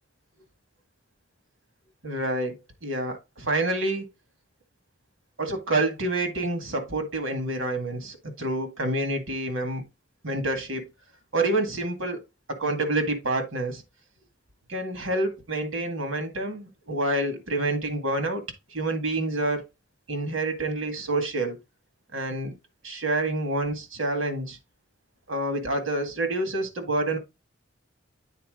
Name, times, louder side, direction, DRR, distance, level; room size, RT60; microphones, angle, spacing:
voice 1, 2.0-2.6 2.8-4.1 5.4-9.8 10.2-10.9 11.3-12.2 12.5-13.8 14.7-18.4 18.7-19.7 20.1-21.6 22.1-22.5 22.8-24.6 25.3-27.2, right 2 dB, 80° right, 2.0 m, -28 dB
8.7 x 4.3 x 3.7 m
head